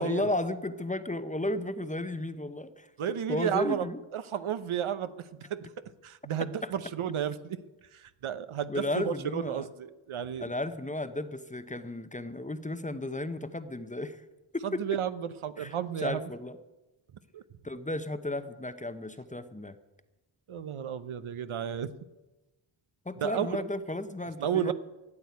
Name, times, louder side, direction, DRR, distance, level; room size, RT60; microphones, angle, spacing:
voice 1, 0.0-4.0 6.6-6.7 8.7-9.7 10.4-14.2 14.5-14.8 15.6-16.6 17.6-19.8 23.1-24.7, left 1 dB, 15° left, 11 dB, 0.7 m, -34 dB
voice 2, 3.0-3.9 4.1-7.6 7.9-10.5 14.6-16.3 17.3-17.4 20.5-21.9 23.2-23.6 24.4-24.7, right 9 dB, 75° right, 13 dB, 0.9 m, -32 dB
13.5 x 8.5 x 9.4 m, 1.1 s
wide cardioid pair, 110°, 49 cm